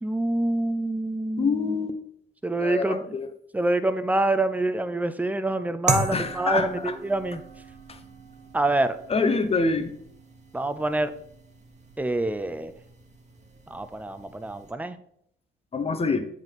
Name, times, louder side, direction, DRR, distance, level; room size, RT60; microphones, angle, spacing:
voice 1, 0.0-1.9 2.4-3.1 3.5-7.4 8.5-9.0 10.5-11.1 12.0-12.7 13.7-15.0, right 2 dB, 10° right, 12 dB, 0.5 m, -26 dB
voice 2, 1.4-1.9 2.6-3.3 6.1-6.9 7.9-8.0 9.1-9.9 15.7-16.3, left 4 dB, 30° left, 9 dB, 0.9 m, -26 dB
sound 1, 5.9-14.7, right 3 dB, 35° right, 1.2 m, -36 dB
7.9 x 3.6 x 5.7 m, 0.70 s
cardioid pair, 90°, 20 cm